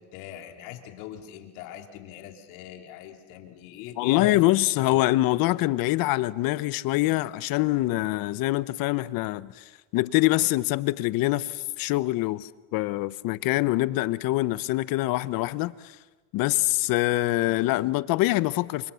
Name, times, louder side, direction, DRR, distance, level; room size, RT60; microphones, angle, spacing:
voice 1, 0.0-4.4, left 11 dB, 80° left, 3.4 m, -41 dB
voice 2, 4.0-16.0 16.3-18.9, left 18 dB, 60° left, 1.0 m, -25 dB
30.0 x 24.5 x 7.1 m
cardioid pair, 135°, 38 cm